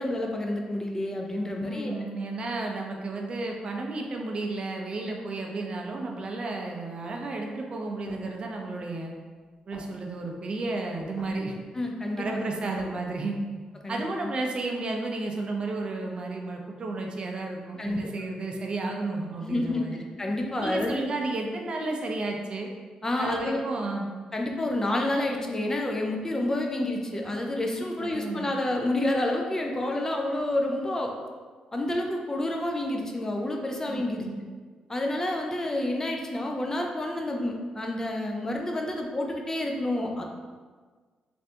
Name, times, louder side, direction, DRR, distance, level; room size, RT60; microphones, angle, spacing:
voice 1, 0.0-2.0 11.7-12.4 13.8-14.3 17.8-18.0 19.4-21.0 23.0-23.6 24.3-31.1 31.7-34.3 34.9-40.2, left 1 dB, 25° left, 1 dB, 0.4 m, -29 dB
voice 2, 1.6-9.1 9.7-11.5 12.2-13.4 13.9-20.0 20.6-22.7 23.2-24.1 27.8-28.5 33.9-34.4, right 2 dB, 45° right, 1 dB, 0.4 m, -32 dB
sound 1, 8.1-8.3 9.0-9.1 9.5-9.6 9.7-10.4 11.0-11.5 12.0-12.1 12.2-13.4, left 1 dB, 75° left, 0.7 m, -47 dB
3.2 x 2.5 x 2.7 m, 1.5 s
cardioid pair, 75°, 2 cm